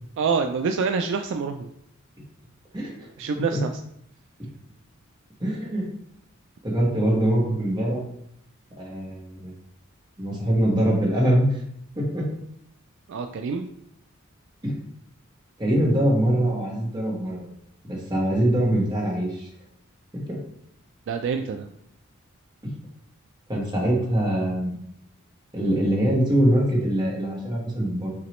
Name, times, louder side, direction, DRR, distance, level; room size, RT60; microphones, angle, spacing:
voice 1, 0.2-1.7 3.2-3.7 13.1-13.7 21.1-21.7, right 5 dB, 60° right, 6 dB, 0.3 m, -26 dB
voice 2, 2.7-3.1 3.5-3.6 5.4-5.8 6.6-8.0 8.8-9.5 10.2-11.6 11.9-12.2 14.6-14.7 15.6-17.5 17.8-19.5 20.1-20.4 23.5-24.7 25.5-28.1, right 1 dB, 20° right, -3 dB, 1.4 m, -23 dB
6.0 x 2.9 x 3.0 m, 0.72 s
head